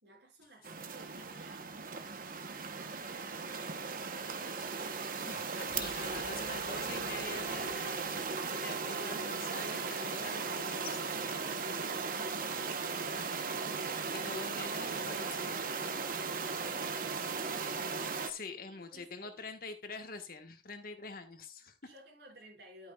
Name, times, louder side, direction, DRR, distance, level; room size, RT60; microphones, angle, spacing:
voice 1, 0.0-1.7 2.0-4.3 11.9-13.3 18.7-19.3 21.8-22.9, right 1 dB, 65° right, 5.2 m, -57 dB
sound 1, 0.6-18.3, right 5 dB, 50° right, 0.9 m, -37 dB
voice 2, 5.2-11.0 14.1-15.6 18.2-21.8, left 3 dB, 55° left, 1.3 m, -45 dB
sound 2, 5.7-8.7, left 3 dB, 75° left, 1.8 m, -52 dB
11.0 x 9.1 x 2.3 m
head